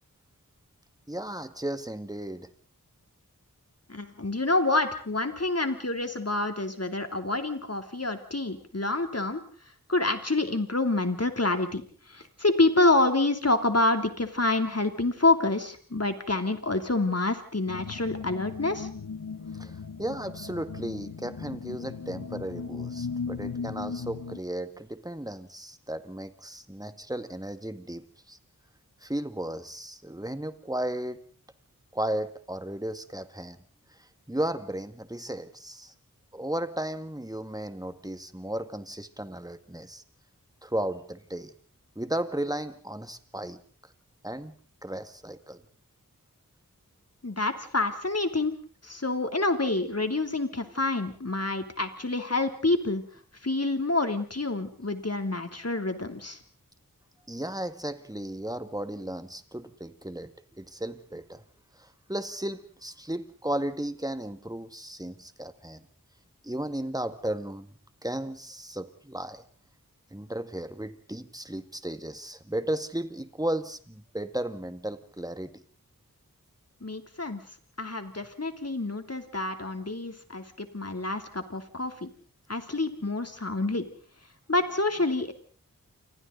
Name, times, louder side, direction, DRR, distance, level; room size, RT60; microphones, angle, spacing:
voice 1, 1.1-2.5 19.5-19.7 20.0-28.4 29.0-31.2 31.9-33.6 33.9-35.9 36.3-40.0 40.6-41.5 42.0-43.6 44.2-45.6 57.3-61.4 61.8-65.9 66.4-67.7 68.0-69.4 70.1-75.6, right 1 dB, 10° right, 10 dB, 2.0 m, -35 dB
voice 2, 3.9-9.4 9.9-18.9 47.2-48.5 48.8-53.0 53.4-56.4 76.8-77.4 77.8-82.1 82.5-83.8 84.5-85.3, left 2 dB, 45° left, 7 dB, 3.1 m, -27 dB
sound 1, 17.7-24.4, left 5 dB, 75° left, 1.1 m, -37 dB
29.0 x 25.5 x 4.0 m, 0.43 s
wide cardioid pair, 45°, 34 cm